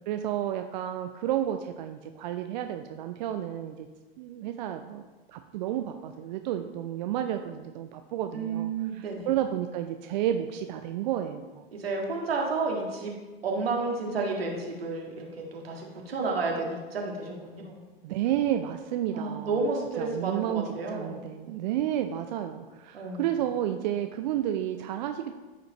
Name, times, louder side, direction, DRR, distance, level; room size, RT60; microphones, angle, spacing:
voice 1, 0.1-3.9 4.2-5.0 5.3-11.6 18.0-19.6 20.0-20.6 20.9-25.3, right 11 dB, 45° right, 7 dB, 0.5 m, -31 dB
voice 2, 8.3-9.3 11.7-13.1 13.4-17.8 19.1-21.2 22.9-23.2, right 3 dB, 75° right, -1 dB, 1.9 m, -31 dB
13.5 x 5.0 x 3.0 m, 1.3 s
figure-of-eight pair, 95°, 30 cm